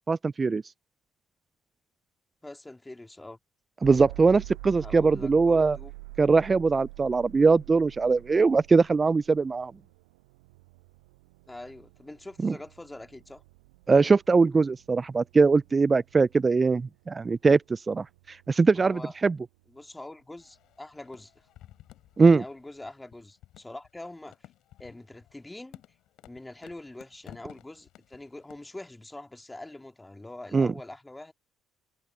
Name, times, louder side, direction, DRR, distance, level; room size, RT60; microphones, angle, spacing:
voice 1, 0.1-0.6 3.8-5.8 6.2-9.7 12.4-12.5 13.9-19.4 22.2-22.4 30.5-30.7, right 4 dB, 30° right, 0.3 m, -22 dB
voice 2, 2.4-3.4 4.8-5.9 11.5-13.4 18.8-19.1 19.7-21.5 22.2-24.4 24.8-25.8 26.2-31.3, left 2 dB, 15° left, 2.2 m, -44 dB
sound 1, 3.8-19.8, right 24 dB, 90° right, 6.7 m, -47 dB
sound 2, 20.4-28.8, left 14 dB, 70° left, 4.7 m, -54 dB
hypercardioid pair, 65°, 0 cm